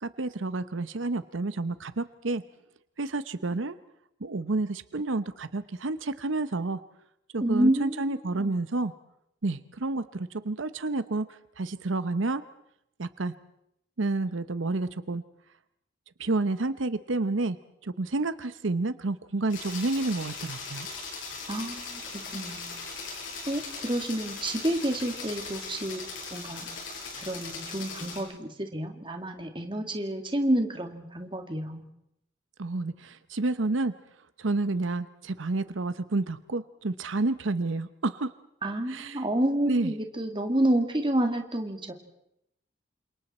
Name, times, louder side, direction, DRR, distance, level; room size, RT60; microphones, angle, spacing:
voice 1, 0.0-2.4 3.0-3.7 4.2-6.8 7.3-8.9 9.4-11.3 11.6-12.4 13.0-13.3 14.0-15.2 16.2-17.6 17.8-20.9 32.6-33.9 34.4-38.3 38.9-39.2 39.7-39.9, right 2 dB, 90° right, 13 dB, 0.8 m, -29 dB
voice 2, 7.4-8.5 21.5-22.0 22.3-22.7 23.0-23.2 23.5-26.0 26.3-26.7 27.2-31.9 38.6-41.9, right 1 dB, 25° right, 5 dB, 2.2 m, -29 dB
sound 1, 19.5-28.2, left 4 dB, 90° left, 8.0 m, -39 dB
29.0 x 27.0 x 4.3 m, 0.78 s
head